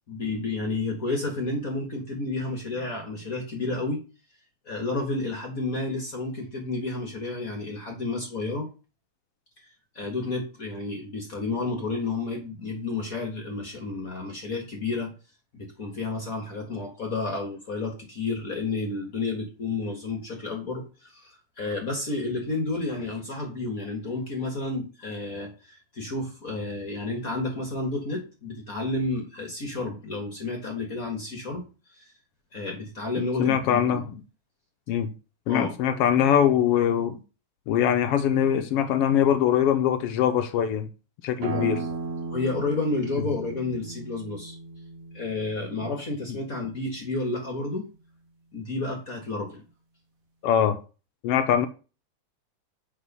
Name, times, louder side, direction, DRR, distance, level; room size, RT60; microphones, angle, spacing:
voice 1, 0.1-4.0 4.6-8.7 9.6-9.7 9.9-15.1 15.5-32.1 32.5-34.0 35.5-35.7 41.5-41.9 42.3-44.5 45.1-47.9 48.5-49.6, left 3 dB, 45° left, 1.1 m, -31 dB
voice 2, 33.4-34.2 34.9-35.1 35.5-37.2 37.7-40.9 41.2-41.8 50.4-50.8 51.2-51.7, left 9 dB, 85° left, 1.3 m, -22 dB
sound 1, 41.4-46.8, right 4 dB, 65° right, 2.6 m, -36 dB
8.7 x 4.4 x 5.3 m
omnidirectional pair, 3.4 m